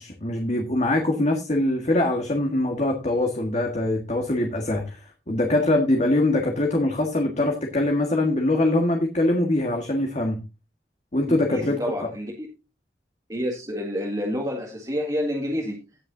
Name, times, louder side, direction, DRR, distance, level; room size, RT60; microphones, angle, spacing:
voice 1, 0.0-5.0 5.3-10.4 11.1-12.1, left 1 dB, 40° left, 1.7 m, -23 dB
voice 2, 11.3-12.3 13.3-15.8, equal, 20° right, 1.9 m, -28 dB
17.5 x 6.6 x 2.7 m
head